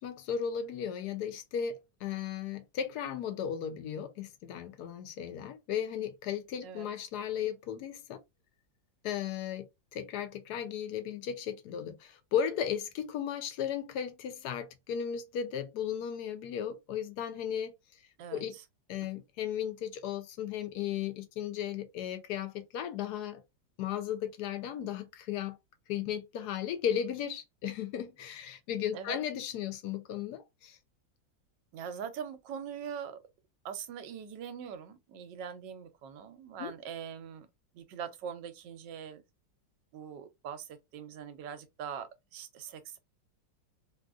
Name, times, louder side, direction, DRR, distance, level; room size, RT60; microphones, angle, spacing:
voice 1, 0.0-8.2 9.0-17.7 18.3-18.5 18.9-23.4 23.8-25.6 25.9-30.8 36.6-36.7, left 9 dB, 70° left, 1.0 m, -35 dB
voice 2, 18.2-18.6 28.9-29.2 31.7-33.2 33.6-37.5 37.7-39.2 39.9-43.0, right 7 dB, 75° right, 1.2 m, -42 dB
3.7 x 2.3 x 2.4 m
omnidirectional pair, 2.0 m